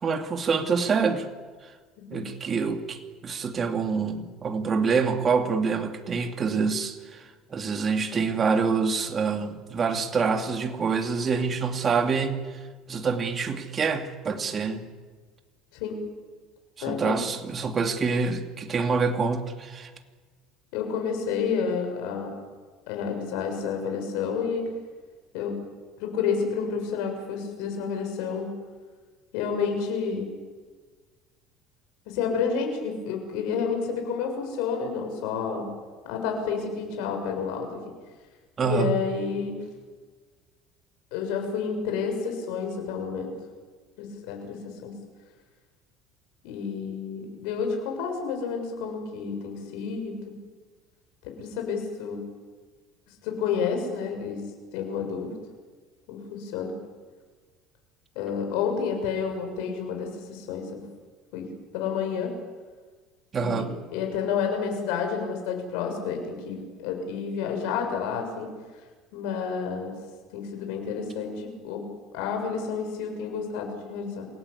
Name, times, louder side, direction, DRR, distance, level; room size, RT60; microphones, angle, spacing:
voice 1, 0.0-1.3 2.1-12.4 12.9-14.9 16.8-19.9 38.6-39.0 63.3-63.7, right 5 dB, 30° right, 5 dB, 2.7 m, -26 dB
voice 2, 15.7-16.0 16.8-17.2 20.7-22.3 22.9-24.7 25.3-25.6 26.0-28.5 29.3-30.3 32.1-35.6 36.0-37.8 38.6-39.5 41.1-43.4 44.0-44.9 46.4-50.3 51.2-52.2 53.2-54.4 54.7-55.3 56.1-56.7 58.2-60.8 61.3-61.5 61.7-62.3 63.4-68.5 69.1-70.0 70.3-71.8 72.1-74.3, left 6 dB, 80° left, 3 dB, 7.1 m, -30 dB
28.0 x 18.0 x 8.5 m, 1.4 s
supercardioid pair, 120°, 0 cm